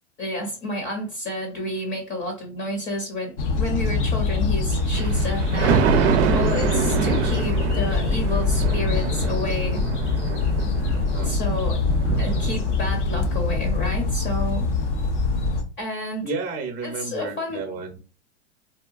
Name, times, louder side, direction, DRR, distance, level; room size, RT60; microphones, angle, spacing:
voice 1, 0.2-5.9 6.3-9.8 11.2-11.8 12.2-14.7 15.8-16.3 16.8-17.6, left 1 dB, 30° left, 3 dB, 0.7 m, -30 dB
sound 1, 3.4-15.6, left 3 dB, 80° left, 0.7 m, -24 dB
Thunder, 4.8-13.1 13.5-13.6, right 6 dB, 70° right, 0.5 m, -26 dB
voice 2, 16.2-18.0, right 4 dB, 25° right, 2 dB, 0.6 m, -32 dB
2.8 x 2.2 x 2.4 m, 0.34 s
hypercardioid pair, 110°, 35 cm